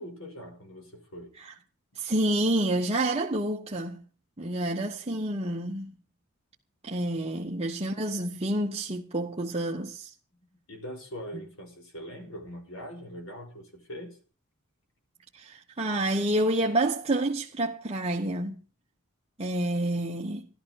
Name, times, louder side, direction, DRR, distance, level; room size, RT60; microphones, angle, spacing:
voice 1, 0.0-1.4 7.3-7.6 10.7-14.2, equal, 65° left, 5.2 m, -42 dB
voice 2, 1.9-4.0 4.4-5.9 6.8-10.1 15.3-18.6 19.4-20.5, right 1 dB, 30° right, 1.2 m, -28 dB
14.5 x 12.0 x 6.4 m
head